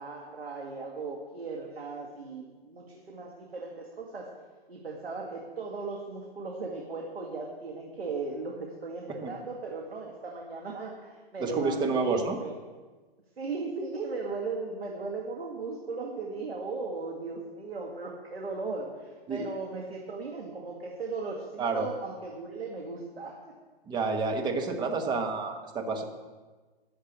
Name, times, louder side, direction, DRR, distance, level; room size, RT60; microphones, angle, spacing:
voice 1, 0.0-4.4 4.7-12.6 13.4-23.6, right 3 dB, 80° right, 0 dB, 2.1 m, -37 dB
voice 2, 11.4-12.4 19.3-19.5 21.6-21.9 23.9-26.0, right 4 dB, 15° right, 3 dB, 1.3 m, -29 dB
11.5 x 7.3 x 8.0 m, 1.3 s
hypercardioid pair, 130°, 30 cm